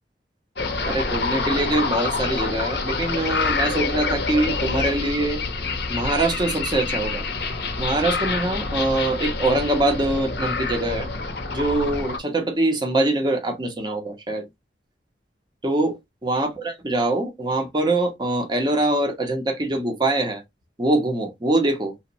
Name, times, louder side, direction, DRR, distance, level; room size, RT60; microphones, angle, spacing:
sound 1, 0.6-12.2, left 3 dB, 65° left, 0.6 m, -27 dB
voice 1, 0.9-5.4 5.9-7.2 7.8-11.1 11.5-14.5 15.6-16.0 16.2-20.4 20.8-21.9, right 2 dB, 25° right, 0.6 m, -23 dB
2.9 x 2.1 x 2.6 m
head